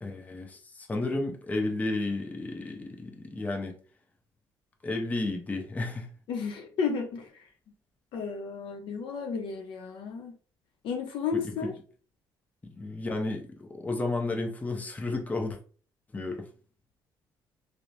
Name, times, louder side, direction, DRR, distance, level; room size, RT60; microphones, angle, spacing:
voice 1, 0.0-3.8 4.8-6.1 11.3-11.7 12.7-15.6 16.1-16.5, left 2 dB, 15° left, 0.6 m, -32 dB
voice 2, 6.3-7.5 8.1-10.3 10.8-11.7, left 5 dB, 70° left, 0.6 m, -33 dB
3.0 x 2.1 x 2.5 m
cardioid pair, 90°, 9 cm